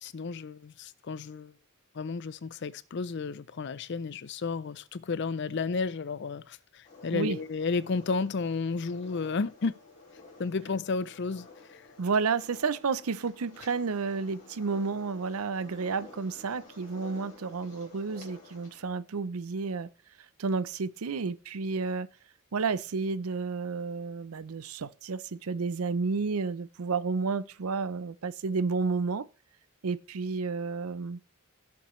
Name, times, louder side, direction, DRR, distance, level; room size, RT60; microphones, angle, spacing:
voice 1, 0.0-1.5 1.9-9.7 10.4-11.8, left 4 dB, 50° left, 0.5 m, -32 dB
sound 1, 6.8-18.8, left 3 dB, 35° left, 3.5 m, -52 dB
voice 2, 12.0-19.9 20.4-22.1 22.5-29.3 29.8-31.2, right 4 dB, 80° right, 0.6 m, -31 dB
16.0 x 7.0 x 3.1 m
head